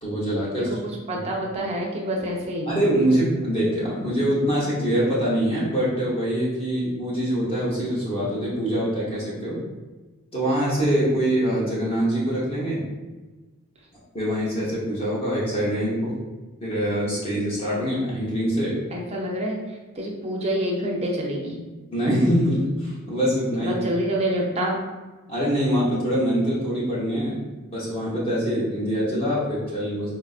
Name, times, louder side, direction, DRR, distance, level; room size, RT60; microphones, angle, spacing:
voice 1, 0.0-0.7 1.1-1.2 2.7-9.6 10.3-12.9 14.1-16.1 16.6-18.7 21.9-23.8 25.3-30.1, equal, 25° left, -6 dB, 0.8 m, -24 dB
voice 2, 0.7-2.7 18.9-21.6 23.6-24.8, right 1 dB, 30° right, -1 dB, 0.5 m, -27 dB
3.9 x 2.4 x 2.4 m, 1.2 s
head